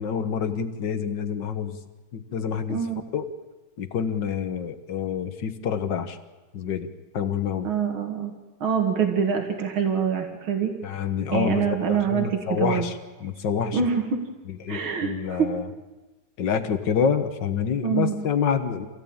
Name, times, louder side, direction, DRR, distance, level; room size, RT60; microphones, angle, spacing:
voice 1, 0.0-1.8 2.1-2.8 3.1-3.3 3.8-6.2 6.5-6.9 7.1-7.7 10.8-13.8 14.6-15.7 16.4-18.9, left 7 dB, 60° left, 9 dB, 2.0 m, -27 dB
voice 2, 2.7-3.0 7.6-8.3 8.6-10.7 11.3-12.9 13.7-14.2 14.7-15.5 17.8-18.1, right 7 dB, 75° right, 3 dB, 2.8 m, -25 dB
26.5 x 16.0 x 8.8 m, 1.2 s
omnidirectional pair, 2.3 m